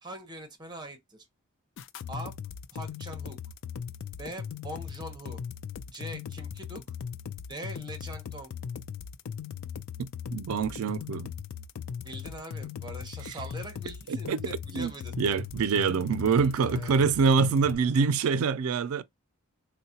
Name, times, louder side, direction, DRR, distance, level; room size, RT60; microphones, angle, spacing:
voice 1, 0.0-1.3 2.1-2.3 2.7-3.4 4.2-5.4 5.9-6.8 7.5-8.5 12.0-15.2 16.6-17.1, right 1 dB, 20° right, 0.8 m, -42 dB
sound 1, 1.8-17.8, left 7 dB, 60° left, 0.3 m, -39 dB
voice 2, 10.0-11.3 14.1-14.5 14.7-14.9 15.2-19.0, right 5 dB, 80° right, 0.4 m, -25 dB
3.7 x 2.1 x 2.7 m
head